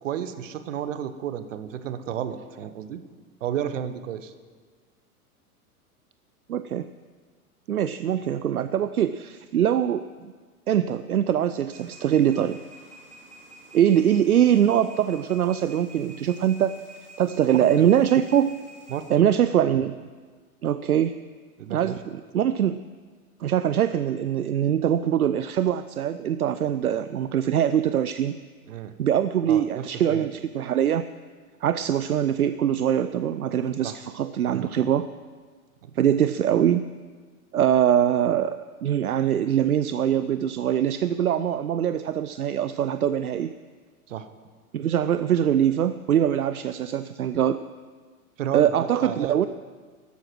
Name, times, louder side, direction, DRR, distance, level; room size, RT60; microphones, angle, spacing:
voice 1, 0.0-3.0 3.4-4.3 17.5-17.6 18.9-19.3 21.6-22.0 28.7-28.9 29.5-30.2 33.8-34.0 34.5-34.7 35.8-35.9 44.1-44.3 48.4-49.5, right 9 dB, 55° right, 11 dB, 1.2 m, -32 dB
voice 2, 6.5-6.9 7.7-10.3 10.7-12.6 13.7-16.8 17.2-18.6 19.1-20.0 20.6-21.2 21.7-22.8 23.4-28.4 29.0-31.1 31.6-35.1 35.9-36.8 37.5-43.5 44.7-47.6 48.5-49.5, right 10 dB, 75° right, 13 dB, 0.6 m, -23 dB
sound 1, 11.7-19.1, right 1 dB, 15° right, 4.6 m, -49 dB
13.5 x 12.5 x 6.1 m, 1.5 s
figure-of-eight pair, 95°, 44 cm